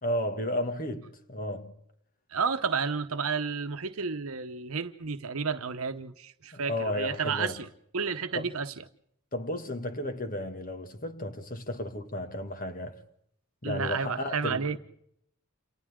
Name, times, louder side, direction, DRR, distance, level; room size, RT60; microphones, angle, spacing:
voice 1, 0.0-1.7 6.5-7.6 8.3-8.5 9.3-13.0 13.6-14.8, left 1 dB, 40° left, 2.1 m, -33 dB
voice 2, 2.3-7.7 7.9-8.7 13.6-14.8, right 5 dB, 70° right, 0.9 m, -31 dB
29.5 x 28.5 x 3.8 m
head